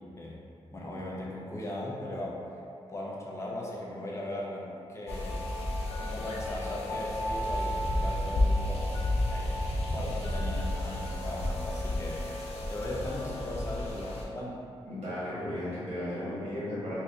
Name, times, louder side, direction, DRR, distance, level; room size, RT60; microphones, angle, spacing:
voice 1, 0.7-2.4 2.9-5.4 6.0-12.3 12.7-14.6, left 1 dB, 25° left, -4 dB, 0.6 m, -38 dB
sound 1, 5.1-14.2, left 1 dB, 75° left, 0.5 m, -31 dB
voice 2, 14.9-17.0, left 1 dB, 80° right, -11 dB, 1.4 m, -35 dB
4.1 x 2.4 x 2.6 m, 2.6 s
wide cardioid pair, 115°, 11 cm